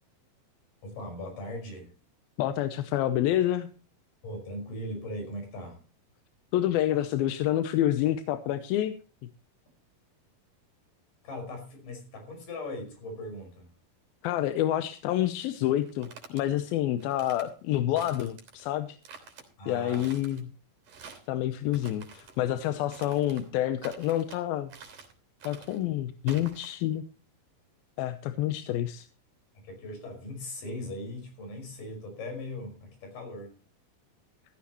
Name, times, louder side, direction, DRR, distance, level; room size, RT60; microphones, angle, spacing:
voice 1, 0.8-1.9 4.2-5.8 11.2-13.7 19.6-20.1 29.5-33.5, left 1 dB, 65° left, 4 dB, 6.8 m, -39 dB
voice 2, 2.4-3.7 6.5-8.9 14.2-19.0 19.7-20.5 21.3-24.7 25.4-27.0 28.0-29.1, left 13 dB, 90° left, 10 dB, 2.7 m, -28 dB
sound 1, 15.8-16.4 17.0-17.5 18.0-18.6 19.0-19.4 19.9-20.4 20.8-21.3 21.7-22.4 22.9-23.5 23.8-24.4 24.7-25.1 25.4-25.8 26.3-26.7, right 5 dB, 60° right, 4.8 m, -48 dB
15.5 x 14.5 x 3.0 m, 0.37 s
omnidirectional pair, 4.1 m